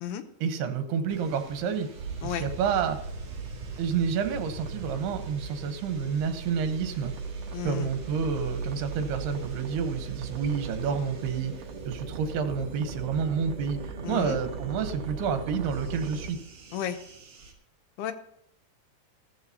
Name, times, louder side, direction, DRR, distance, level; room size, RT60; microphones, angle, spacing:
voice 1, 0.4-1.9 2.2-3.0 3.8-7.1 7.6-11.5 11.9-16.4, right 6 dB, 80° right, 8 dB, 3.1 m, -29 dB
sound 1, 1.1-17.5, right 4 dB, 45° right, 1.9 m, -50 dB
sound 2, 2.0-16.3, right 4 dB, 60° right, 1.8 m, -38 dB
voice 2, 7.5-7.9 14.0-14.4 16.7-17.0 18.0-18.1, left 10 dB, 80° left, 9 dB, 2.7 m, -32 dB
15.5 x 13.0 x 2.8 m, 0.75 s
omnidirectional pair, 4.6 m